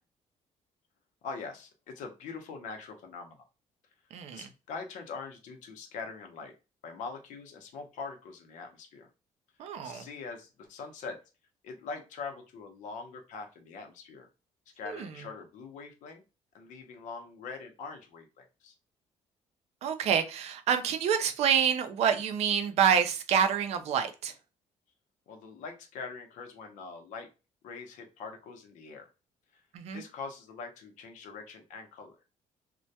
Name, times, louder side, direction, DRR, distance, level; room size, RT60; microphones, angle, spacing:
voice 1, 1.2-3.5 4.3-6.5 6.8-9.1 9.8-11.2 11.6-14.3 14.8-16.2 16.5-18.7 25.3-27.3 27.6-29.1 29.5-29.6 29.9-32.2, left 4 dB, 85° left, 0.6 m, -43 dB
voice 2, 4.1-4.5 9.6-10.0 14.9-15.1 19.8-24.3 29.7-30.0, right 8 dB, 60° right, 0.4 m, -27 dB
2.2 x 2.1 x 2.7 m
cardioid pair, 180°, 12 cm